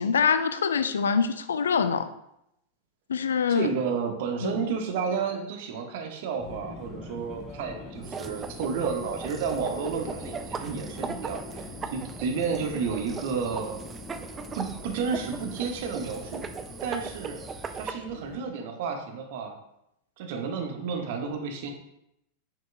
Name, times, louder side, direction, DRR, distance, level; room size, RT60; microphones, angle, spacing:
voice 1, 0.0-2.1 3.1-3.7 4.4-4.7, left 6 dB, 65° left, 11 dB, 0.4 m, -25 dB
voice 2, 3.5-13.8 14.5-16.5 16.8-17.4 17.7-19.6 20.2-21.7, right 5 dB, 50° right, 4 dB, 0.9 m, -31 dB
Subway metro underground, 6.4-18.3, left 3 dB, 20° left, 0.9 m, -43 dB
sound 1, 8.0-17.9, right 5 dB, 20° right, 0.4 m, -39 dB
7.0 x 6.1 x 2.2 m, 0.80 s
figure-of-eight pair, 90°, 0 cm